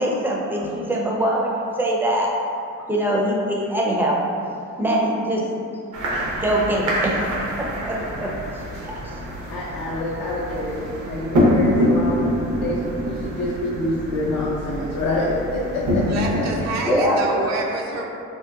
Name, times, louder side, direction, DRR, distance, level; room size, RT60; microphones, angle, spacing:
voice 1, 0.0-2.3 2.9-4.2 4.8-5.4 6.4-7.3 7.6-8.3 8.8-9.2 16.8-17.2, right 1 dB, 5° right, -3 dB, 0.4 m, -23 dB
sound 1, 5.9-16.7, equal, 90° right, 0.8 m, -25 dB
voice 2, 9.5-12.2 12.6-16.0 16.4-16.5 16.8-17.5, left 2 dB, 65° left, -7 dB, 0.6 m, -27 dB
voice 3, 16.1-18.0, right 3 dB, 65° right, -1 dB, 0.4 m, -28 dB
3.2 x 2.7 x 2.3 m, 2.5 s
cardioid pair, 90°, 30 cm